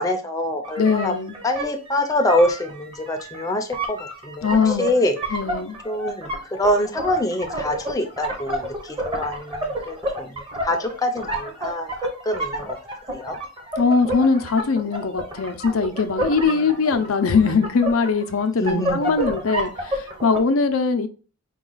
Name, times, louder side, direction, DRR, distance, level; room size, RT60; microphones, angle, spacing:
voice 1, 0.0-1.1 1.4-4.0 4.2-5.2 5.8-12.8 13.1-13.4 16.5-17.0 18.6-19.2, left 1 dB, 15° left, 0.6 m, -25 dB
sound 1, 0.6-20.4, right 1 dB, 25° right, 0.9 m, -30 dB
voice 2, 0.8-1.3 4.4-4.9 5.3-5.8 13.8-21.1, left 4 dB, 80° left, 0.6 m, -21 dB
4.7 x 2.3 x 3.9 m
head